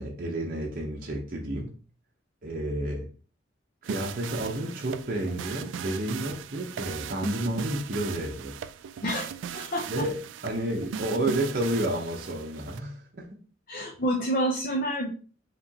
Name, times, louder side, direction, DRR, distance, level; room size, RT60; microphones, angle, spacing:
voice 1, 0.0-1.7 2.4-3.1 3.8-8.6 9.9-10.2 10.4-13.3, right 1 dB, 50° right, -1 dB, 0.7 m, -30 dB
sound 1, 3.8-12.8, right 8 dB, 85° right, 0.3 m, -38 dB
voice 2, 9.0-10.1 13.7-15.1, right 1 dB, 50° left, 0 dB, 0.6 m, -29 dB
4.9 x 3.0 x 2.8 m, 0.40 s
head